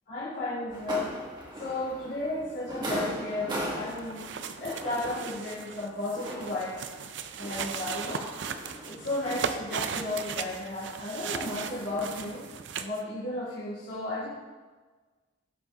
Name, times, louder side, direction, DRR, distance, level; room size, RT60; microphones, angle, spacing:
voice 1, 0.1-1.1 1.6-6.8 7.4-8.3 8.9-12.5 12.8-14.3, left 2 dB, 70° left, -9 dB, 2.8 m, -34 dB
sound 1, 0.7-12.5, right 1 dB, 25° right, 1.5 m, -40 dB
sound 2, 3.9-13.0, right 6 dB, 65° right, 0.5 m, -37 dB
16.5 x 6.9 x 2.9 m, 1.4 s
head